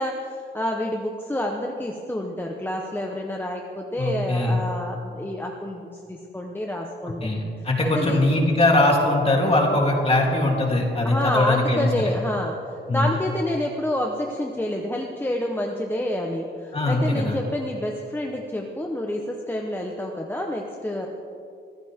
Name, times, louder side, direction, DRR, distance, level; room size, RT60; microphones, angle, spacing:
voice 1, 0.0-7.3 7.8-8.2 11.0-21.1, left 1 dB, 10° left, 0 dB, 1.0 m, -28 dB
voice 2, 4.0-4.6 7.2-12.1 12.9-13.1 16.7-17.4, left 1 dB, 30° left, -2 dB, 3.3 m, -21 dB
25.0 x 15.0 x 3.7 m, 2.6 s
wide cardioid pair, 140°, 19 cm